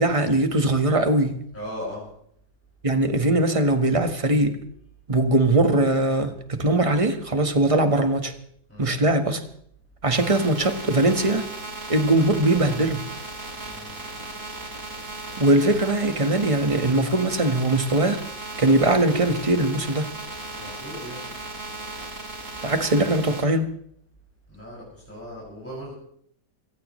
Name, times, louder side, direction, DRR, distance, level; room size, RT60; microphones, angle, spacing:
voice 1, 0.0-1.3 2.8-4.6 5.1-8.3 8.8-9.4 10.0-11.5 11.9-13.0 15.4-18.2 18.6-20.1 22.6-23.7, right 2 dB, 20° right, 1.5 m, -21 dB
voice 2, 1.5-2.0 8.7-9.1 13.6-13.9 20.5-21.3 24.5-25.9, equal, 10° left, 6.5 m, -38 dB
sound 1, 10.1-23.4, right 2 dB, 50° right, 5.9 m, -37 dB
26.0 x 16.5 x 3.2 m
omnidirectional pair, 1.7 m